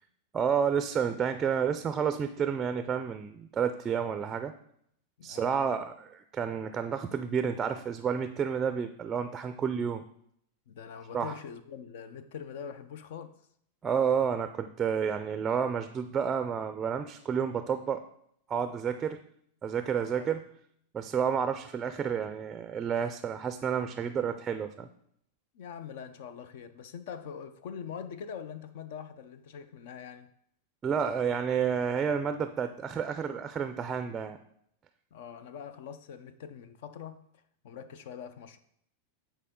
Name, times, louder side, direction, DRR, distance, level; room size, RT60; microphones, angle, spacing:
voice 1, 0.3-4.5 5.2-10.0 11.1-11.3 13.8-18.0 18.5-19.2 19.6-20.4 20.9-24.9 30.8-34.4, right 7 dB, 20° right, 0.4 m, -30 dB
voice 2, 5.2-5.7 10.7-13.4 20.1-20.4 25.5-30.3 35.1-37.3 37.6-38.6, left 7 dB, 65° left, 0.5 m, -43 dB
9.1 x 4.4 x 3.7 m
supercardioid pair, 135°, 0 cm